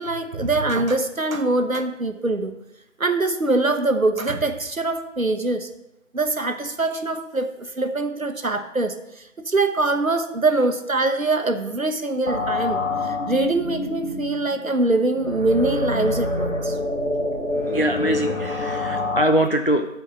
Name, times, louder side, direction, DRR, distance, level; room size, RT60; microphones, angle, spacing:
voice 1, 0.0-2.5 3.0-5.7 6.1-8.9 9.4-16.7, right 2 dB, 90° right, 7 dB, 1.3 m, -23 dB
sound 1, 12.3-19.2, left 2 dB, 80° left, 2.4 m, -27 dB
voice 2, 17.7-19.9, right 1 dB, 45° left, 6 dB, 0.4 m, -22 dB
12.5 x 4.6 x 6.0 m, 0.88 s
figure-of-eight pair, 175°, 40 cm